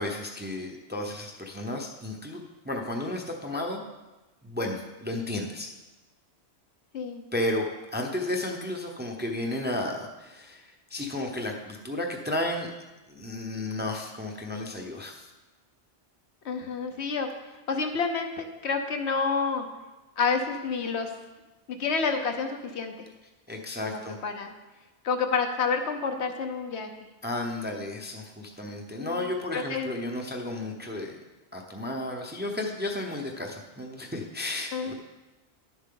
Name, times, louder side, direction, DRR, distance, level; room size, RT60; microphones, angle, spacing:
voice 1, 0.0-3.8 4.4-5.7 7.3-7.6 7.9-12.7 13.1-15.3 23.5-24.2 27.2-31.2 31.5-34.9, left 1 dB, 10° right, 1 dB, 0.7 m, -33 dB
voice 2, 16.4-17.3 17.7-19.7 20.2-21.1 21.7-22.9 23.8-24.5 25.0-26.9 29.0-30.2 34.7-34.9, left 5 dB, 70° left, 5 dB, 1.1 m, -29 dB
11.0 x 7.2 x 3.8 m, 1.1 s
omnidirectional pair, 1.2 m